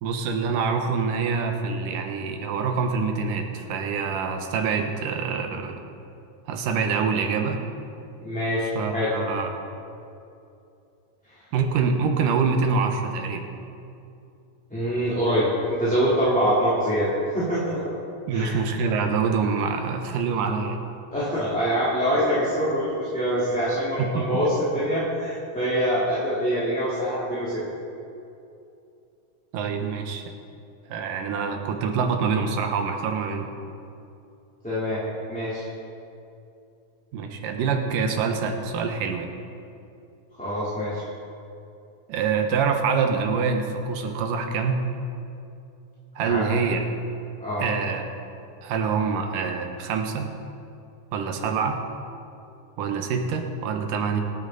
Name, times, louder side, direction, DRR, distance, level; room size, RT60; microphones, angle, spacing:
voice 1, 0.0-5.8 6.5-7.6 8.7-9.5 11.5-13.5 18.3-20.8 24.0-24.5 29.5-30.2 30.9-33.5 37.1-39.3 42.1-44.8 46.2-46.8 47.6-48.0 48.6-50.3 51.1-51.8 52.8-54.2, right 5 dB, 80° right, 4 dB, 2.7 m, -25 dB
voice 2, 8.2-9.1 14.7-17.1 17.3-17.8 18.3-18.6 21.1-27.6 34.6-35.0 35.3-35.7 40.4-41.0 46.2-46.4 47.4-47.6, equal, 5° left, -10 dB, 2.8 m, -24 dB
26.0 x 9.0 x 4.0 m, 2.7 s
omnidirectional pair, 3.8 m